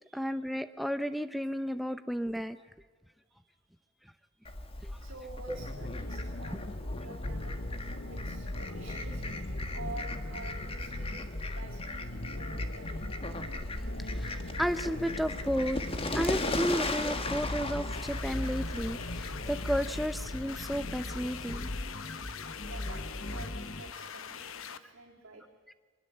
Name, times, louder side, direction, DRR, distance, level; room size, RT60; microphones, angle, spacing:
voice 1, 0.1-2.6 4.8-4.9 5.5-5.6 14.1-15.8 16.1-21.7, equal, ahead, 10 dB, 0.8 m, -33 dB
voice 2, 3.3-3.7 4.3-4.5 4.9-7.6 8.0-9.5 9.7-13.4 22.6-25.5, right 3 dB, 65° right, -4 dB, 3.8 m, -49 dB
Fowl, 4.4-20.8, left 2 dB, 25° left, 1.5 m, -38 dB
sound 1, 5.5-23.9, left 1 dB, 50° left, 1.1 m, -39 dB
sound 2, 17.9-24.8, left 7 dB, 75° left, 1.1 m, -43 dB
24.5 x 20.0 x 8.0 m, 1.5 s
head